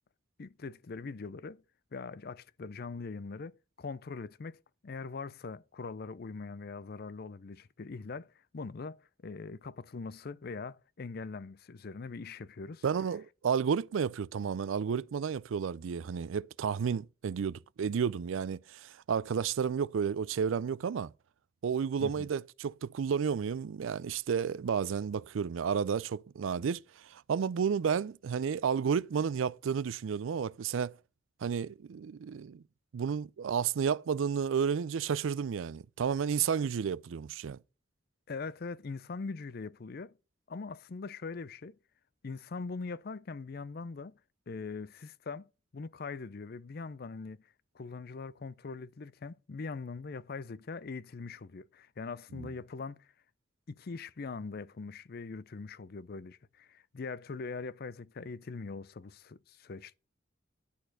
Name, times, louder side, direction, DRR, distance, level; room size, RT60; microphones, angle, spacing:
voice 1, 0.4-1.6 1.9-12.8 22.0-22.3 38.3-40.1 40.5-41.8 42.2-44.1 44.5-45.4 45.7-47.4 47.7-53.1 53.7-59.9, left 4 dB, 50° left, 0.5 m, -42 dB
voice 2, 12.8-21.1 21.6-31.0 31.4-32.6 32.9-37.6 52.3-52.5, right 7 dB, 80° right, 0.4 m, -32 dB
11.5 x 4.2 x 7.9 m
head